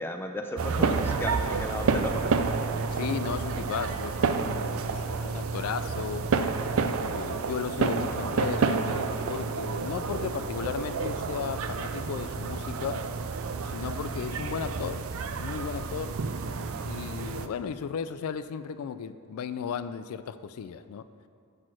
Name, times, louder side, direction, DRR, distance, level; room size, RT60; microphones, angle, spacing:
voice 1, 0.0-2.1, left 1 dB, 10° left, 4 dB, 0.5 m, -34 dB
sound 1, 0.6-17.5, right 4 dB, 70° right, 0.4 m, -30 dB
voice 2, 2.9-6.3 7.0-13.0 13.6-16.2 16.9-21.0, left 7 dB, 75° left, 12 dB, 0.3 m, -35 dB
6.5 x 6.1 x 7.5 m, 2.5 s
head